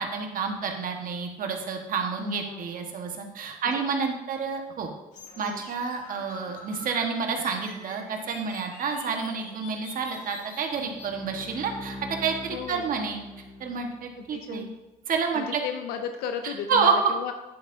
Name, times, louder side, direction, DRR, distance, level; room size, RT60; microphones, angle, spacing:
voice 1, 0.0-4.9 5.4-12.0 12.2-13.2 13.6-14.7 15.1-15.6 16.4-17.1, right 5 dB, 60° right, 3 dB, 1.5 m, -29 dB
voice 2, 2.2-2.7 5.4-5.6 12.5-12.9 14.2-14.7 15.3-17.3, left 8 dB, 85° left, 6 dB, 0.6 m, -35 dB
sound 1, 5.1-11.1, left 3 dB, 55° left, 2.5 m, -46 dB
Bowed string instrument, 10.7-14.2, left 1 dB, 10° left, 1.9 m, -42 dB
10.5 x 7.4 x 2.7 m, 1.1 s
supercardioid pair, 80°, 16 cm